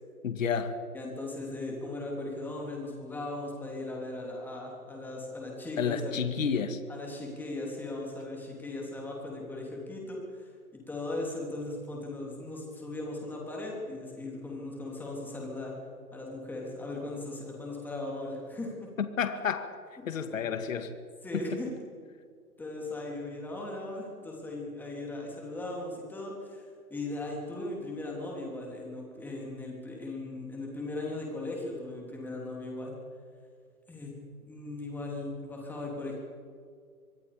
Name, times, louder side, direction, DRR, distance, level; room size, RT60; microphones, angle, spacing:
voice 1, 0.2-0.8 5.8-6.8 19.0-19.7 20.1-20.9, left 6 dB, 60° left, 9 dB, 2.0 m, -30 dB
voice 2, 0.9-6.2 6.9-10.5 10.9-15.7 16.1-18.9 21.2-21.7 22.6-32.9 33.9-34.1 34.4-36.1, left 2 dB, 5° left, -2 dB, 3.6 m, -38 dB
25.5 x 21.5 x 5.2 m, 2.1 s
hypercardioid pair, 150°, 46 cm